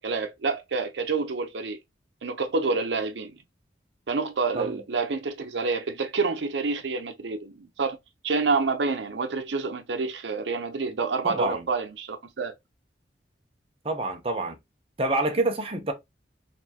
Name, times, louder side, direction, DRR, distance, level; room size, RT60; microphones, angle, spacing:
voice 1, 0.0-1.8 2.2-3.4 4.1-8.0 8.2-12.5, right 4 dB, 85° right, 0.6 m, -28 dB
voice 2, 11.2-11.6 13.8-14.6 15.0-15.9, right 2 dB, 30° right, 0.7 m, -27 dB
4.2 x 2.7 x 2.8 m
head